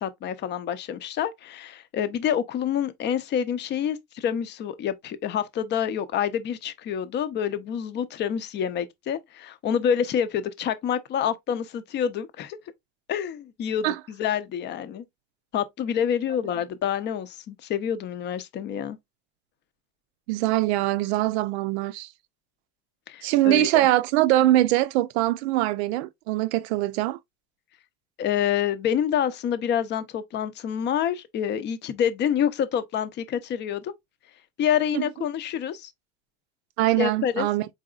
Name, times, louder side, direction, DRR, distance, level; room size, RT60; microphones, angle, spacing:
voice 1, 0.0-12.6 13.1-15.0 15.5-19.0 23.1-23.7 28.2-33.9 34.6-35.9 37.0-37.5, left 9 dB, 35° left, 0.6 m, -27 dB
voice 2, 20.3-22.1 23.2-27.2 34.9-35.0 36.8-37.7, right 16 dB, 80° right, 0.6 m, -22 dB
4.1 x 3.8 x 2.3 m
supercardioid pair, 130°, 32 cm